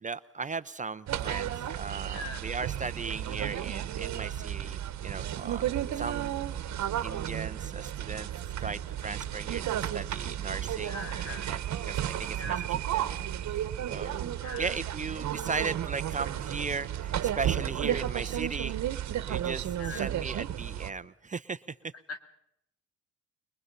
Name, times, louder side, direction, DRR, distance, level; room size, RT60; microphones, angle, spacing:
voice 1, 0.0-5.7 5.9-6.3 7.0-8.3 8.6-10.9 11.3-11.6 11.9-12.6 12.9-13.1 13.9-18.8 19.3-21.6, right 4 dB, 25° right, 13 dB, 0.7 m, -37 dB
sound 1, 1.1-20.9, right 11 dB, 65° right, 1.2 m, -33 dB
voice 2, 2.1-2.5 10.8-11.6 12.3-12.7 14.4-14.8 19.8-20.1 22.1-22.2, left 3 dB, 55° left, 8 dB, 2.7 m, -41 dB
23.5 x 22.5 x 5.6 m, 0.77 s
cardioid pair, 90°, 30 cm